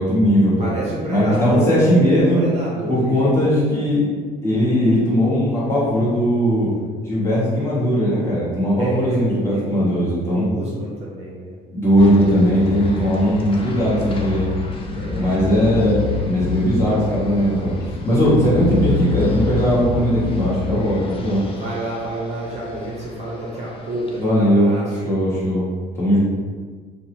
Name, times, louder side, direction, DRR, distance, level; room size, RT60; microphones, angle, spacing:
voice 1, 0.0-0.7 1.1-2.4 2.9-4.0 4.4-6.7 7.0-10.5 11.7-14.5 15.1-17.7 18.0-21.4 24.2-24.7 25.0-25.7 25.9-26.2, equal, 15° left, -9 dB, 1.1 m, -18 dB
voice 2, 0.6-3.5 8.8-9.9 10.2-11.5 14.9-15.4 21.5-25.1, right 1 dB, 40° right, -4 dB, 0.6 m, -29 dB
sound 1, 12.0-24.2, left 4 dB, 30° left, 0.4 m, -28 dB
2.7 x 2.0 x 2.9 m, 1.5 s
cardioid pair, 110°, 17 cm